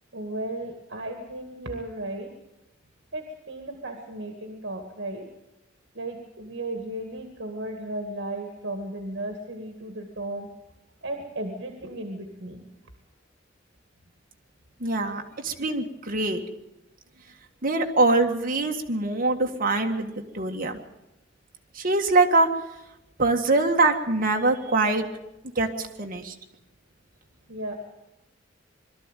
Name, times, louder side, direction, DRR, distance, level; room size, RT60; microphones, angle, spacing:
voice 1, 0.1-2.3 3.1-5.3 5.9-10.5 11.0-12.7 27.5-27.8, right 1 dB, 65° right, 4 dB, 2.1 m, -35 dB
voice 2, 14.8-16.4 17.6-20.8 21.8-22.5 23.2-25.1 25.6-26.3, right 2 dB, 45° right, 3 dB, 1.9 m, -23 dB
22.0 x 13.5 x 9.2 m, 0.91 s
head